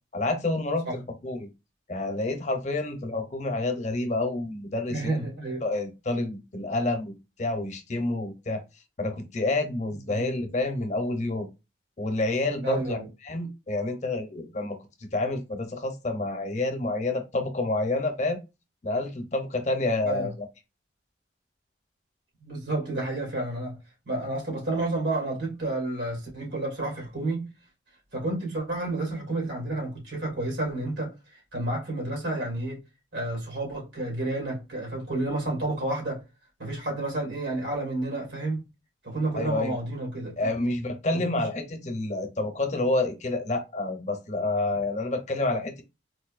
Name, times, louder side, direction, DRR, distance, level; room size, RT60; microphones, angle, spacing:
voice 1, 0.1-1.5 1.9-5.2 5.6-8.6 9.0-11.5 12.0-14.8 15.1-18.4 18.8-20.3 39.3-39.7 40.4-45.8, left 2 dB, 40° left, 0.7 m, -28 dB
voice 2, 4.9-5.6 10.1-10.3 12.6-13.1 20.0-20.3 22.4-23.8 24.1-27.5 28.1-32.8 33.1-36.2 36.6-38.6 39.0-40.5 41.1-41.5, right 2 dB, 90° right, 2.3 m, -30 dB
4.2 x 2.6 x 2.5 m
head